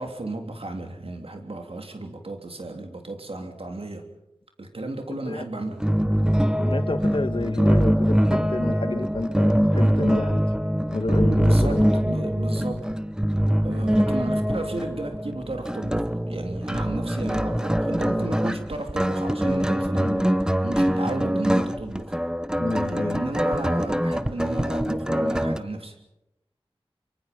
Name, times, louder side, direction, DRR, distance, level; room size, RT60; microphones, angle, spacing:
voice 1, 0.0-4.1 4.6-5.8 11.3-13.0 13.6-22.2 22.7-25.9, right 2 dB, 70° right, 4 dB, 3.3 m, -33 dB
voice 2, 5.1-5.4 6.6-10.4 10.9-11.9 17.5-17.6 20.0-20.3 22.6-23.2, left 2 dB, 55° left, 10 dB, 1.7 m, -29 dB
sound 1, 5.8-25.6, equal, 5° right, 1.0 m, -23 dB
25.0 x 24.5 x 5.4 m, 0.88 s
wide cardioid pair, 40°, 10 cm